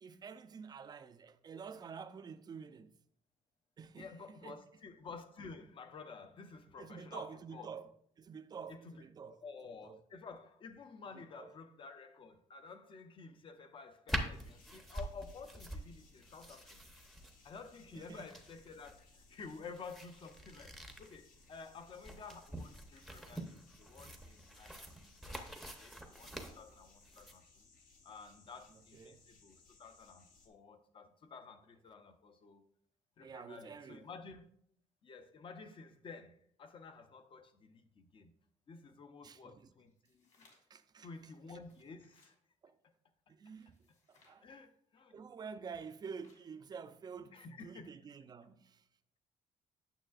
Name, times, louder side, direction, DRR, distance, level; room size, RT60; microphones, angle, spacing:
voice 1, 0.0-2.9 3.8-4.6 6.8-7.9 8.2-9.4 9.8-10.0 11.1-11.5 17.9-18.3 28.9-29.2 33.2-34.0 39.2-39.7 40.7-41.1 42.6-42.8 43.3-43.8 44.1-44.5 45.1-48.8, right 6 dB, 30° right, 0.4 m, -49 dB
voice 2, 4.0-7.9 8.7-16.8 17.4-27.6 28.0-32.6 33.2-34.5 35.0-38.3 38.7-40.4 41.0-42.3 44.4-45.2 47.3-47.9, left 4 dB, 40° left, 0.7 m, -52 dB
sound 1, 14.1-27.3, right 1 dB, ahead, 0.7 m, -46 dB
sound 2, 14.3-30.5, left 3 dB, 80° left, 1.6 m, -65 dB
sound 3, 39.9-40.8 41.5-42.4 43.5-44.4 45.7-46.5, left 3 dB, 60° left, 2.3 m, -70 dB
8.9 x 6.6 x 2.4 m
cardioid pair, 150°, 14 cm